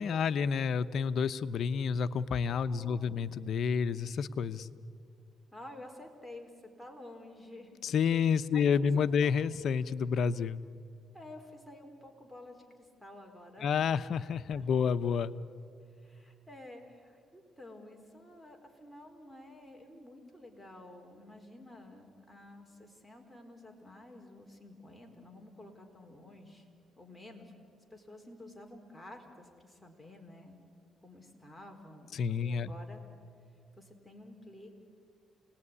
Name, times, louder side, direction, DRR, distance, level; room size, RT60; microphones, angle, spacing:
voice 1, 0.0-4.7 7.8-10.6 13.6-15.4 32.1-32.7, left 6 dB, 65° left, 12 dB, 0.9 m, -29 dB
voice 2, 2.6-3.2 5.5-7.7 8.5-9.1 11.1-13.7 14.5-14.7 15.9-26.7 27.0-30.6 31.0-33.0 33.8-34.8, left 1 dB, ahead, 1 dB, 4.6 m, -51 dB
28.5 x 19.5 x 9.8 m, 2.3 s
cardioid pair, 90°, 0 cm